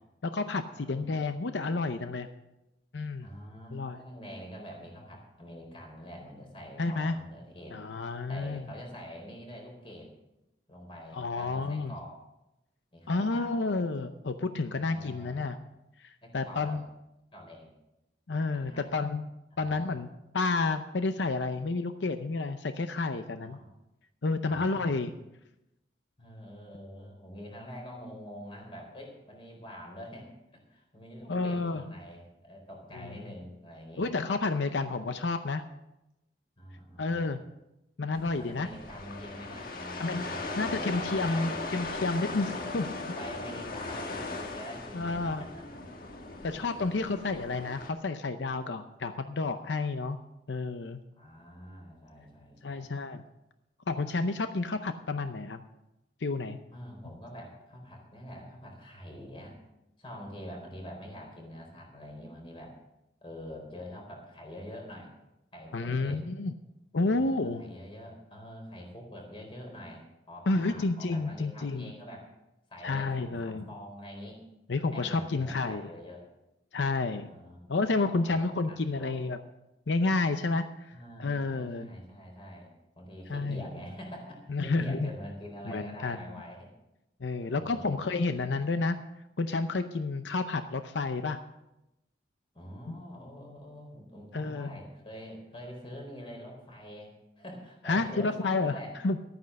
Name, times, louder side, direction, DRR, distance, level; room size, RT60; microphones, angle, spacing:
voice 1, 0.2-2.3 2.9-3.3 3.7-4.0 6.8-7.2 7.7-8.6 11.1-11.9 13.1-15.6 16.0-16.8 18.3-19.2 19.6-23.6 24.2-25.1 31.3-31.9 32.9-33.1 34.0-35.6 37.0-37.4 38.0-38.7 40.0-40.3 40.6-42.5 42.7-42.8 44.9-45.4 46.4-50.2 50.5-51.0 52.6-53.2 53.9-55.6 56.2-56.6 65.7-66.5 66.9-67.7 70.5-71.9 72.8-73.6 74.7-75.9 76.7-77.3 77.7-79.4 79.9-80.9 81.2-81.9 83.3-83.6 84.5-85.1 85.7-86.2 87.2-89.0 89.4-91.4 92.9-93.0 94.3-94.7 97.9-98.8 99.0-99.2, left 3 dB, 85° left, 9 dB, 0.7 m, -30 dB
voice 2, 0.8-1.3 3.2-7.7 8.3-10.1 10.7-12.1 12.9-13.8 14.7-15.5 16.2-16.8 17.3-17.7 18.5-19.0 23.4-23.7 24.4-24.8 26.2-34.1 36.6-37.3 38.4-40.9 41.2-41.6 42.3-42.7 43.2-45.6 47.0-47.1 51.1-52.9 56.7-59.6 60.0-62.7 63.2-65.1 65.5-66.2 67.0-72.3 72.7-74.4 74.9-76.3 77.0-77.7 78.1-78.3 78.7-79.2 80.9-82.7 82.9-86.7 87.4-87.9 92.5-97.1 97.4-98.9, equal, 30° left, 1 dB, 4.2 m, -45 dB
sound 1, 38.1-47.9, left 3 dB, 50° left, 1.5 m, -38 dB
13.0 x 9.5 x 6.4 m, 0.91 s
head